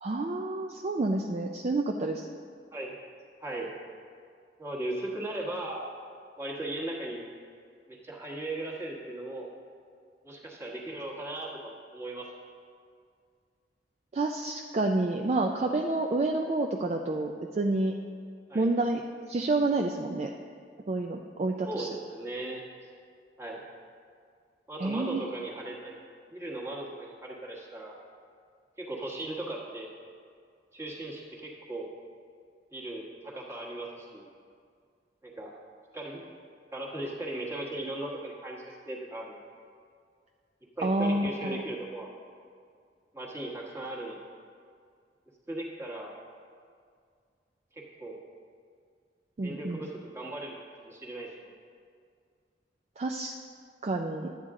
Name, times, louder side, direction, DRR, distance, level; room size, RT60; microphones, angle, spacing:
voice 1, 0.0-2.3 14.1-18.0 18.5-19.0 19.3-20.3 20.9-21.9 24.8-25.2 40.8-41.6 49.4-49.9 53.0-53.4 53.8-54.3, right 2 dB, 40° right, 2 dB, 0.4 m, -29 dB
voice 2, 3.4-3.7 4.6-5.8 6.4-7.2 7.9-9.5 10.2-12.3 18.5-18.7 21.6-22.6 23.4-23.6 24.7-26.0 26.3-28.0 28.8-29.9 30.7-31.9 32.7-34.3 35.2-35.5 35.9-36.2 36.7-39.4 40.8-42.1 43.1-44.2 45.5-46.1 47.7-48.2 49.4-51.5, right 1 dB, 15° right, -3 dB, 1.3 m, -37 dB
11.5 x 8.8 x 3.7 m, 2.2 s
head